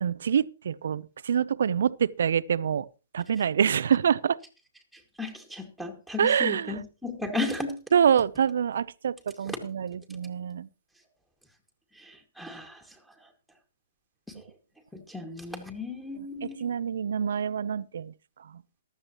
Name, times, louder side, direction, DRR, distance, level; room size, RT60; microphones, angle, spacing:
voice 1, 0.0-2.8 3.1-4.4 6.2-6.7 7.9-10.7 16.6-18.1, right 8 dB, 70° right, 0.6 m, -26 dB
voice 2, 5.2-7.8 9.5-9.6 12.0-12.8 14.4-14.5 14.9-16.7, left 2 dB, ahead, 2.1 m, -35 dB
14.5 x 12.0 x 3.0 m
hypercardioid pair, 130°, 0 cm